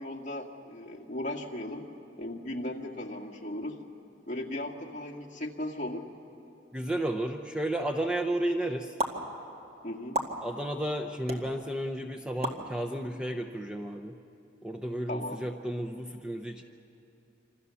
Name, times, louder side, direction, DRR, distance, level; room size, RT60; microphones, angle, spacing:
voice 1, 0.0-1.9 2.2-3.8 4.3-6.0 9.8-10.2 15.1-15.4, left 1 dB, 35° left, 0 dB, 2.1 m, -37 dB
voice 2, 6.7-8.9 10.4-14.1 14.6-16.6, right 1 dB, 5° right, 4 dB, 0.7 m, -32 dB
sound 1, 9.0-9.1 10.1-10.3 11.3-11.4 12.4-12.6, right 1 dB, 35° right, 1.9 m, -29 dB
27.0 x 26.0 x 7.0 m, 2.7 s
head